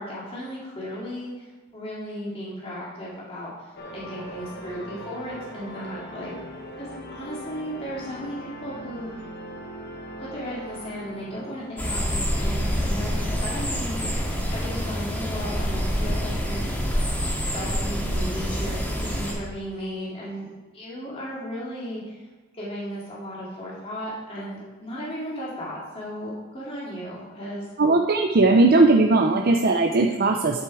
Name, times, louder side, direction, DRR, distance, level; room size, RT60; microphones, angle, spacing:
voice 1, 0.0-6.3 6.7-9.2 10.2-16.6 17.5-20.5 20.7-22.3 22.5-27.7, equal, 25° left, -7 dB, 2.8 m, -35 dB
sound 1, 3.8-13.0, equal, 45° left, 1.7 m, -40 dB
sound 2, 11.8-19.3, equal, 10° left, 2.1 m, -26 dB
voice 2, 27.8-30.6, right 2 dB, 40° right, 3 dB, 0.6 m, -18 dB
10.0 x 7.9 x 4.8 m, 1.2 s
head